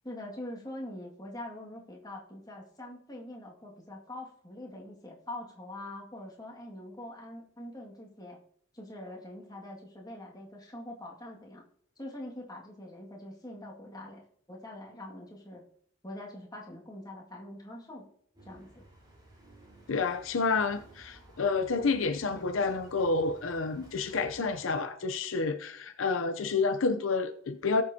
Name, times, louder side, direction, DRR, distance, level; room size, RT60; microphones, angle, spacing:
voice 1, 0.0-8.4 8.7-11.6 12.0-14.2 14.5-15.6 16.0-18.1 18.4-18.9, left 1 dB, 20° left, 2.1 m, -44 dB
sound 1, 18.3-24.8, right 1 dB, 20° right, 4.0 m, -55 dB
voice 2, 19.9-27.8, left 4 dB, 80° left, 0.7 m, -29 dB
18.5 x 6.8 x 2.8 m
head